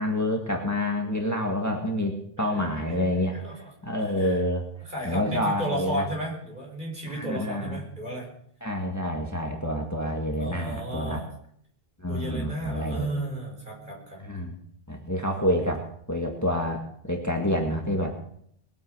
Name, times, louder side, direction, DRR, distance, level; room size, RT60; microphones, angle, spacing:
voice 1, 0.0-4.6 5.0-6.1 7.1-7.8 8.6-11.2 12.0-13.1 14.2-14.6 14.9-18.2, left 1 dB, 15° left, 2 dB, 2.0 m, -28 dB
voice 2, 3.3-3.7 4.0-4.4 4.9-8.3 10.4-11.3 12.1-14.2, right 1 dB, 45° right, -1 dB, 6.3 m, -33 dB
21.0 x 9.2 x 6.9 m, 0.66 s
omnidirectional pair, 1.1 m